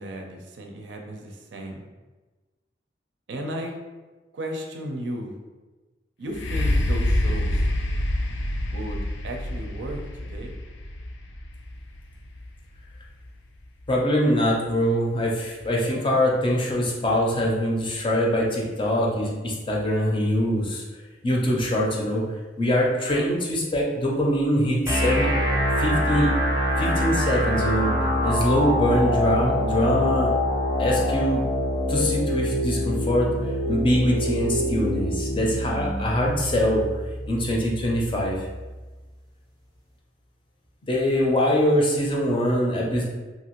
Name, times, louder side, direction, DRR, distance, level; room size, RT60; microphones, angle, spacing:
voice 1, 0.0-1.8 3.3-3.8 4.3-5.3 6.2-7.7 8.7-10.5, equal, 80° right, 2 dB, 0.5 m, -34 dB
sound 1, 6.3-14.0 14.7-14.8, left 1 dB, 80° left, 0.4 m, -27 dB
voice 2, 13.9-20.8 21.2-22.2 22.6-25.3 25.8-26.3 26.8-30.3 30.8-31.5 31.9-33.3 33.7-36.8 37.3-38.4 40.9-43.0, equal, 30° left, -2 dB, 0.5 m, -23 dB
sound 2, 24.9-38.8, left 1 dB, 20° right, 0.5 m, -25 dB
2.8 x 2.4 x 2.9 m, 1.2 s
head